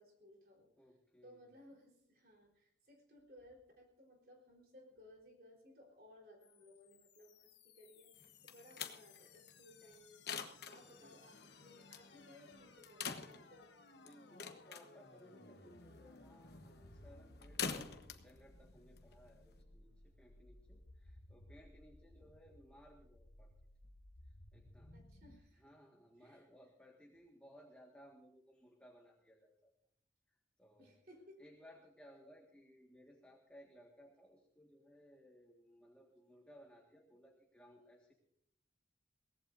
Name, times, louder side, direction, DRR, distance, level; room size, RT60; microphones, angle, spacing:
voice 1, 0.0-0.7 1.2-13.7 22.2-22.3 24.9-25.7 26.2-26.5 30.8-31.4, left 1 dB, 55° right, -1 dB, 3.9 m, -61 dB
voice 2, 0.8-1.4 10.9-11.2 14.0-23.5 24.5-24.9 25.6-29.7 30.6-30.9 31.4-38.1, equal, 5° left, -1 dB, 1.7 m, -62 dB
sound 1, 6.4-25.4, left 2 dB, 75° left, 1.5 m, -61 dB
sound 2, 8.2-19.6, left 6 dB, 60° left, 1.1 m, -48 dB
23.0 x 17.5 x 2.6 m, 0.73 s
head